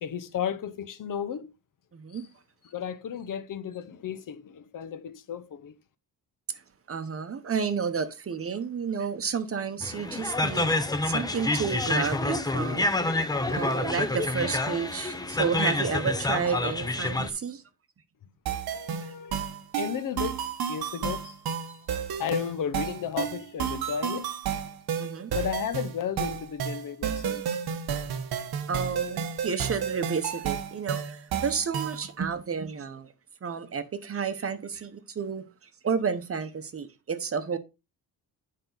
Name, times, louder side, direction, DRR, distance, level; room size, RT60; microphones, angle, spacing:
voice 1, 0.0-1.5 2.1-2.2 2.7-5.7 18.7-19.4 19.8-20.4 20.7-21.4 22.2-24.3 25.3-27.6, left 8 dB, 55° left, 0.7 m, -33 dB
voice 2, 1.9-2.3 6.5-6.6 6.9-10.7 11.0-12.9 13.5-17.6 18.9-19.1 25.0-25.3 28.7-33.1 33.4-35.4 35.8-37.6, right 6 dB, 35° right, 0.8 m, -31 dB
sound 1, 9.8-17.3, left 2 dB, 10° left, 0.5 m, -28 dB
sound 2, 18.5-32.1, right 8 dB, 75° right, 1.0 m, -32 dB
9.3 x 5.4 x 3.9 m
wide cardioid pair, 160°, 38 cm